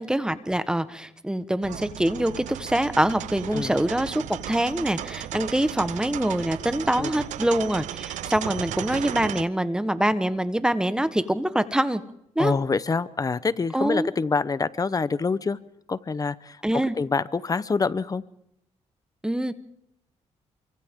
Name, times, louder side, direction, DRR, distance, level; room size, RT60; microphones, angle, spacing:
voice 1, 0.0-12.0 12.3-12.5 13.7-14.1 16.6-16.9 19.2-19.5, right 1 dB, 5° right, 12 dB, 1.3 m, -25 dB
sound 1, 1.6-9.4, right 12 dB, 90° right, 0.8 m, -35 dB
voice 2, 12.4-15.6 15.9-18.2, left 4 dB, 30° left, 16 dB, 0.9 m, -26 dB
29.0 x 25.0 x 3.8 m, 0.78 s
cardioid pair, 95°, 12 cm